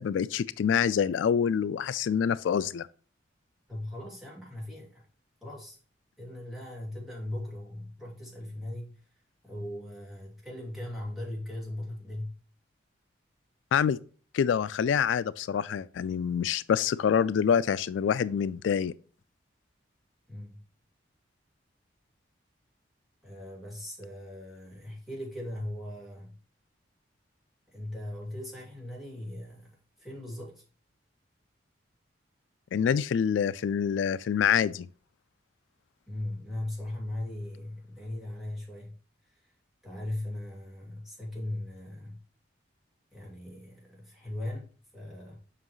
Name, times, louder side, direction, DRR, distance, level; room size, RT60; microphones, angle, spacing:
voice 1, 0.0-2.9 13.7-14.0 14.3-18.9 32.7-34.9, left 7 dB, 80° left, 0.3 m, -26 dB
voice 2, 3.7-5.0 5.4-5.8 6.2-9.0 9.4-12.4 20.3-20.6 23.2-26.4 27.7-29.7 30.0-30.6 36.1-39.0 39.3-39.5 39.8-42.2 43.1-45.4, left 1 dB, ahead, 2.6 m, -39 dB
7.5 x 5.6 x 3.1 m
head